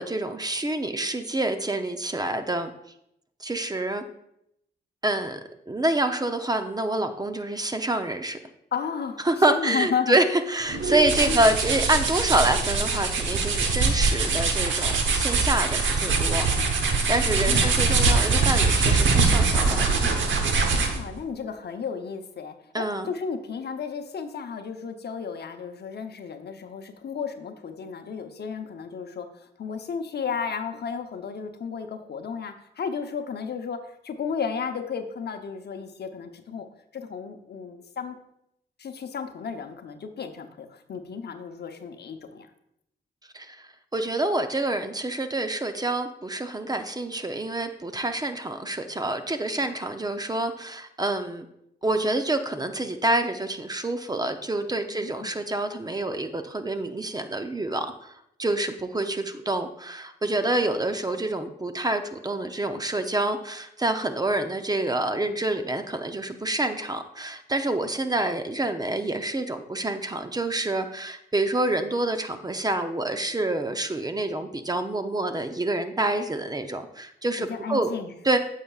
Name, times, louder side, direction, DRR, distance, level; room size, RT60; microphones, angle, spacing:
voice 1, 0.0-2.7 3.4-4.0 5.0-5.4 5.7-8.4 9.2-16.5 17.1-19.9 22.7-23.1 43.3-51.5 51.8-58.1 58.4-77.9 78.2-78.4, right 2 dB, 20° right, 8 dB, 0.6 m, -27 dB
voice 2, 8.7-9.2 9.5-10.2 11.3-11.5 17.4-17.7 20.7-33.8 34.0-36.7 36.9-38.2 38.8-42.5 49.6-49.7 54.9-55.3 77.5-78.1, left 6 dB, 60° left, 7 dB, 0.8 m, -33 dB
sound 1, 10.7-21.1, right 4 dB, 85° right, 0.9 m, -23 dB
8.8 x 6.6 x 2.4 m, 0.78 s
cardioid pair, 65°, 19 cm